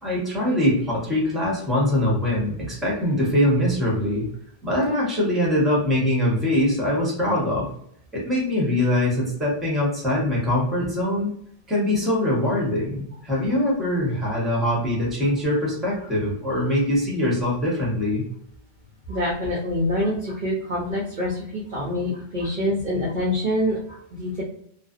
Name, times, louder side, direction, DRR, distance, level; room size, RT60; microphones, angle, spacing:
voice 1, 0.0-4.3 4.6-7.7 8.1-11.3 11.7-18.2, left 1 dB, ahead, -4 dB, 0.7 m, -23 dB
voice 2, 19.1-24.4, left 1 dB, 50° right, -5 dB, 0.6 m, -26 dB
2.5 x 2.1 x 2.4 m, 0.70 s
omnidirectional pair, 1.3 m